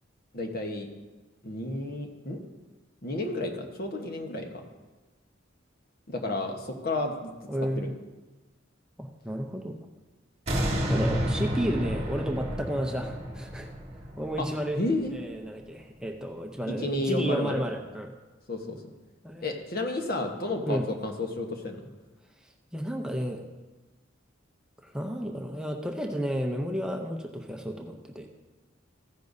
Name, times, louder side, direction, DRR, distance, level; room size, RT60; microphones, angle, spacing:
voice 1, 0.3-0.9 1.4-2.4 3.0-4.6 6.1-7.3 7.8-7.9 14.4-14.5 14.8-15.1 16.8-17.6 18.5-18.8 19.4-21.8, left 2 dB, 50° left, 3 dB, 1.1 m, -31 dB
voice 2, 7.5-7.9 9.0-9.8 10.9-13.7 14.2-14.8 15.1-18.1 19.2-19.5 20.6-20.9 22.7-23.5 24.8-28.3, equal, 5° right, 1 dB, 0.6 m, -32 dB
sound 1, 10.5-15.6 16.0-16.1, equal, 35° right, 1.5 m, -31 dB
15.0 x 10.0 x 2.7 m, 1.2 s
head